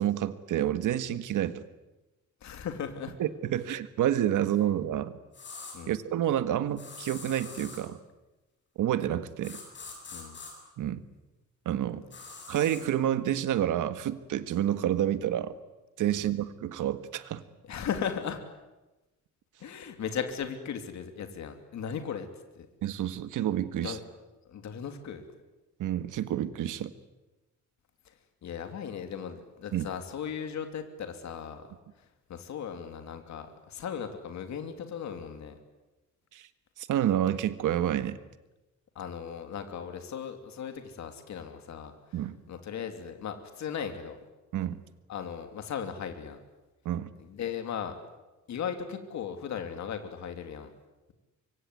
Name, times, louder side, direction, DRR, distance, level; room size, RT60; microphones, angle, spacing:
voice 1, 0.0-1.6 3.2-5.2 5.9-8.0 8.8-9.6 10.8-11.0 11.6-12.0 12.5-15.5 16.0-17.4 22.8-24.0 25.8-26.9 29.7-29.8 36.3-36.5 36.8-38.2 42.1-42.4 44.5-44.8 46.8-47.1, right 11 dB, 85° right, 12 dB, 1.7 m, -29 dB
voice 2, 2.4-3.1 5.7-5.9 10.1-10.4 16.1-16.3 17.6-18.4 19.6-22.3 22.5-22.7 23.8-24.0 24.5-25.3 28.0-28.1 28.4-31.7 32.3-35.5 38.9-41.9 42.5-44.2 45.1-46.4 47.2-47.9 48.5-50.7, left 7 dB, 65° left, 7 dB, 3.0 m, -37 dB
sound 1, 5.3-5.8 6.8-7.8 9.4-10.5 12.1-12.8, left 4 dB, 40° left, 7.9 m, -44 dB
25.0 x 24.0 x 9.5 m, 1.1 s
cardioid pair, 155°, 30 cm